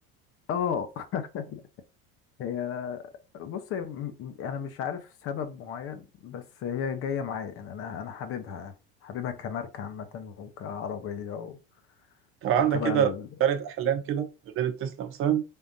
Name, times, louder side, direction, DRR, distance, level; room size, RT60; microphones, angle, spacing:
voice 1, 0.5-1.6 2.4-8.7 9.0-11.6 12.6-13.3, left 7 dB, 50° left, 0.8 m, -34 dB
voice 2, 12.4-13.1 13.4-14.3 14.5-15.4, right 9 dB, 45° right, 0.8 m, -25 dB
4.3 x 3.7 x 2.6 m
supercardioid pair, 130°, 29 cm